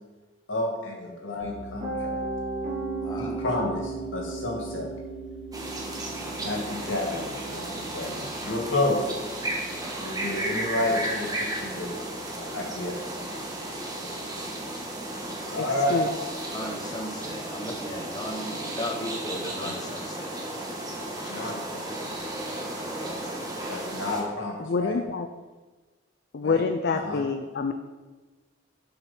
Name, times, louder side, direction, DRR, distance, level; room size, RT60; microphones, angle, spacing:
voice 1, 0.5-2.2 3.2-4.9 6.4-9.1 10.0-11.9 12.4-13.0 15.5-16.1 21.1-22.1 23.7-25.0 26.4-26.6 26.9-27.2, left 2 dB, 80° left, 0 dB, 2.1 m, -30 dB
Piano, 1.4-13.3, right 3 dB, 45° right, 2.3 m, -37 dB
voice 2, 3.0-3.4 16.5-20.3 21.4-21.5 22.7-23.6, left 1 dB, 20° left, 2 dB, 0.8 m, -37 dB
sound 1, 5.5-24.2, right 1 dB, 20° right, 1.4 m, -34 dB
voice 3, 24.6-25.3 26.3-27.7, left 4 dB, 55° left, 7 dB, 0.4 m, -27 dB
7.7 x 7.1 x 4.3 m, 1.3 s
head